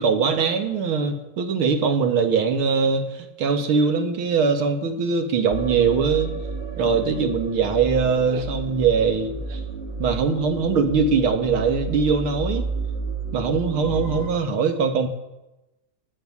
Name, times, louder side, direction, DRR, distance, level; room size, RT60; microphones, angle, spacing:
voice 1, 0.0-3.1 3.4-6.3 6.8-9.6 10.0-12.7 13.3-15.1, right 5 dB, 55° right, 7 dB, 1.8 m, -21 dB
sound 1, 5.5-14.3, right 2 dB, 25° right, 1.6 m, -31 dB
14.5 x 9.7 x 9.5 m, 0.99 s
omnidirectional pair, 3.3 m